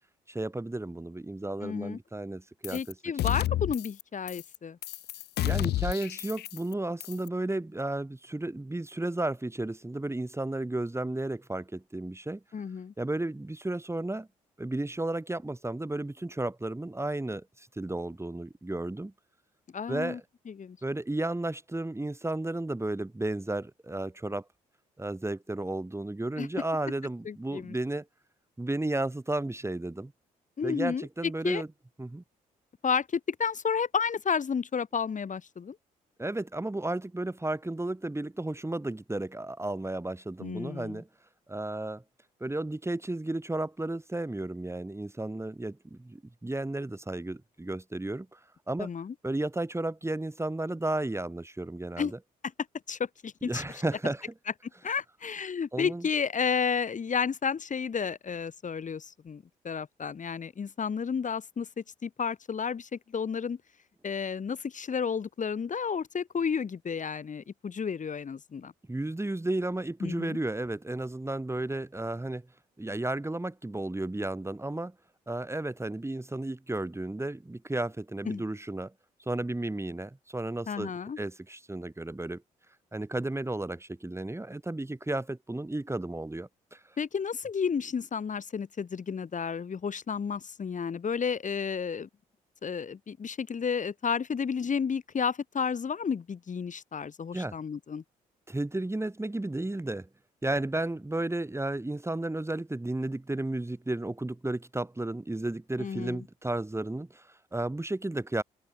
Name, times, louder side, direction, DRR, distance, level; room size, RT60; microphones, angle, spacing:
voice 1, 0.3-2.9 3.3-3.4 5.4-12.4 13.0-14.3 14.6-19.1 19.9-20.2 20.8-24.5 25.0-28.1 28.6-30.1 30.6-31.7 32.0-32.2 36.2-41.1 41.5-42.0 42.4-48.4 48.7-48.9 49.2-52.2 53.4-54.3 55.7-56.1 68.9-72.5 72.8-74.9 75.3-78.9 79.3-80.9 81.2-82.4 82.9-86.8 97.3-97.6 98.5-100.1 100.4-108.4, right 2 dB, 15° right, 5.6 m, -33 dB
voice 2, 1.6-2.0 2.7-4.8 12.5-12.9 19.7-20.2 20.5-20.8 26.4-26.5 27.3-27.8 30.6-31.6 32.8-35.8 40.4-41.0 48.8-49.1 52.0-52.1 52.9-53.8 54.8-63.6 64.0-68.7 70.0-70.4 78.3-78.4 80.7-81.2 87.0-92.1 92.6-98.0 105.8-106.2, left 6 dB, 45° left, 3.5 m, -32 dB
sound 1, 2.6-2.9 3.2-4.0 4.3-4.6 4.8-6.7 7.0-7.3, left 14 dB, 65° left, 0.9 m, -31 dB
open air
hypercardioid pair, 50°, 18 cm